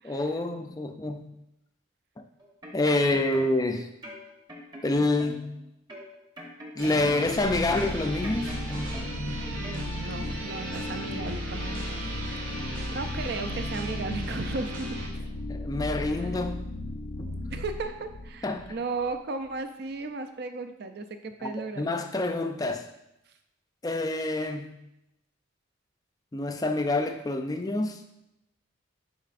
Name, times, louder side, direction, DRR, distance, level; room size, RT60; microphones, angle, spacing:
voice 1, 0.1-1.3 2.7-3.9 4.8-5.5 6.8-8.6 15.5-16.7 17.2-17.3 18.4-18.8 21.4-22.8 23.8-24.8 26.3-28.0, left 2 dB, 20° left, 6 dB, 0.4 m, -27 dB
sound 1, 2.4-3.7 4.0-5.5 5.9-7.4 7.8-9.3 9.6-9.8, equal, 20° right, 1.0 m, -43 dB
sound 2, 6.8-15.1, right 1 dB, 80° right, 1.7 m, -37 dB
sound 3, 7.4-19.1, left 2 dB, 75° left, 0.5 m, -36 dB
voice 2, 9.6-12.5 12.9-15.0 16.2-16.4 17.5-21.9, right 3 dB, 55° right, 7 dB, 0.5 m, -35 dB
10.0 x 4.1 x 2.5 m, 0.86 s
head